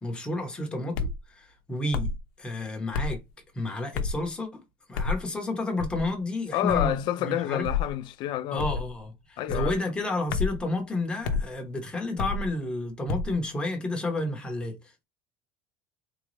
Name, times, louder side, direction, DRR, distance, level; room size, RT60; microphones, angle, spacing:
voice 1, 0.0-3.2 3.5-4.6 4.9-7.7 8.5-14.8, left 2 dB, 10° left, 0.8 m, -31 dB
sound 1, 0.9-1.2 1.9-2.2 2.9-3.2 3.9-4.2 4.9-5.2 5.8-6.1 6.7-7.0 7.6-7.9 8.6-8.9 9.5-9.7 10.3-10.6 11.2-11.5 12.2-12.5 13.1-13.3, left 4 dB, 80° left, 0.7 m, -29 dB
voice 2, 6.5-8.7 9.4-9.8, left 13 dB, 45° left, 0.4 m, -28 dB
3.9 x 2.3 x 3.0 m
cardioid pair, 165°, 11 cm